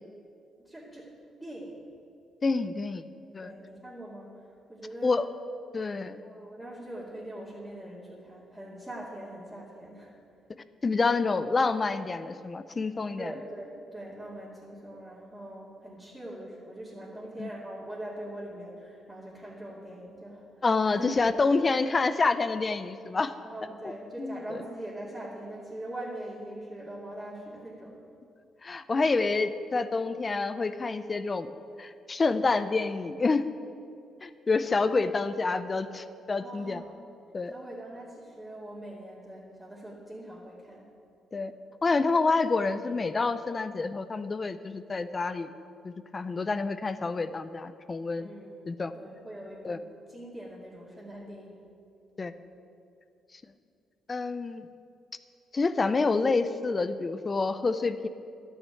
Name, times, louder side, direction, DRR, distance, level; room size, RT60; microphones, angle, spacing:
voice 1, 0.6-1.1 1.4-1.9 3.4-5.1 6.2-10.1 13.1-21.1 23.4-28.0 36.4-37.0 37.5-40.9 48.2-48.6 48.9-51.7, right 1 dB, 10° right, -8 dB, 2.6 m, -42 dB
voice 2, 2.4-3.0 3.3-3.5 5.0-5.3 5.7-6.2 10.8-13.3 17.4-17.5 20.6-23.3 24.2-24.4 28.6-31.5 31.8-33.4 34.2-36.8 37.3-37.5 41.3-41.5 41.8-45.5 45.8-48.3 48.7-48.9 49.6-49.8 52.2-52.3 54.1-54.7 55.5-58.1, left 3 dB, 30° left, 12 dB, 0.6 m, -28 dB
11.5 x 6.5 x 9.1 m, 2.4 s
cardioid pair, 90°, 0 cm